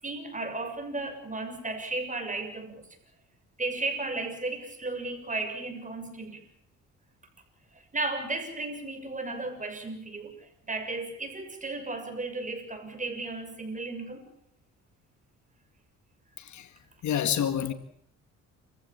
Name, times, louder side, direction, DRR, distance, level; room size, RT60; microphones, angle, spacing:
voice 1, 0.0-2.8 3.6-6.4 7.9-14.3 17.5-17.8, right 2 dB, 25° right, 6.7 m, -34 dB
voice 2, 16.4-16.7 17.0-17.7, left 9 dB, 70° left, 2.0 m, -28 dB
28.5 x 15.5 x 7.2 m
cardioid pair, 90°, 30 cm